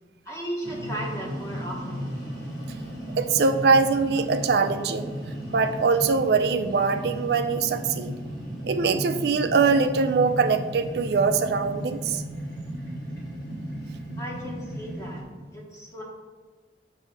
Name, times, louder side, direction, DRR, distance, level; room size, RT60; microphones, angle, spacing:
voice 1, 0.2-2.1 14.2-15.2 15.5-16.0, right 1 dB, 15° left, -3 dB, 1.0 m, -35 dB
sound 1, 0.6-15.2, equal, 60° left, 1.9 m, -35 dB
voice 2, 3.2-5.1 5.5-8.1 8.6-12.2, right 4 dB, 65° right, 9 dB, 0.4 m, -22 dB
7.4 x 2.8 x 5.0 m, 1.4 s
head